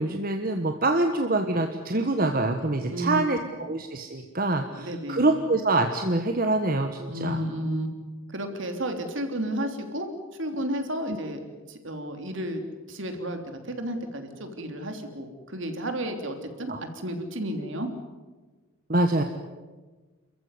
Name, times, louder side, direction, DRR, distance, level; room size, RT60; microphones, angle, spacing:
voice 1, 0.0-7.4 11.1-11.2 16.7-16.8 18.9-19.2, right 2 dB, 45° right, 5 dB, 1.3 m, -25 dB
voice 2, 4.7-5.2 7.1-7.9 8.3-10.1 10.4-11.4 11.7-12.6 12.9-13.4 13.6-17.9, right 1 dB, 65° right, 5 dB, 3.2 m, -32 dB
28.5 x 15.0 x 9.7 m, 1.3 s
head